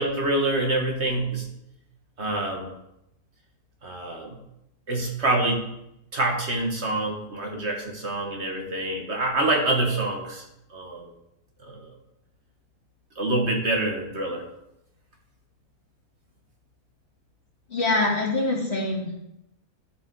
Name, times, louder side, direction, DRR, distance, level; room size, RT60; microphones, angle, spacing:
voice 1, 0.0-1.5 2.2-2.7 3.8-4.4 4.9-5.6 6.1-10.5 10.7-11.1 11.6-12.0 13.2-14.4, right 2 dB, 50° right, 1 dB, 1.7 m, -26 dB
voice 2, 17.7-19.1, left 2 dB, 45° left, -3 dB, 2.4 m, -24 dB
13.0 x 5.3 x 4.7 m, 0.83 s
omnidirectional pair, 1.5 m